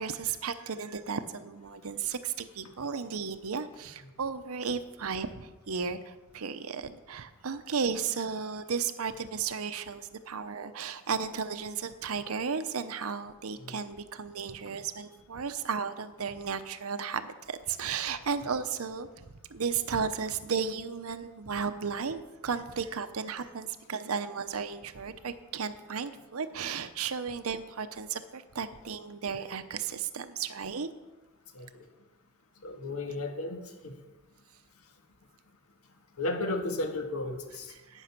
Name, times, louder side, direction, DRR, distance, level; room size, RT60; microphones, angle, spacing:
voice 1, 0.0-30.9 37.7-38.0, right 6 dB, 75° right, 11 dB, 0.8 m, -34 dB
voice 2, 32.6-33.6 33.8-33.9 36.2-37.7, left 2 dB, 85° left, 4 dB, 1.7 m, -33 dB
11.5 x 9.2 x 5.9 m, 1.2 s
head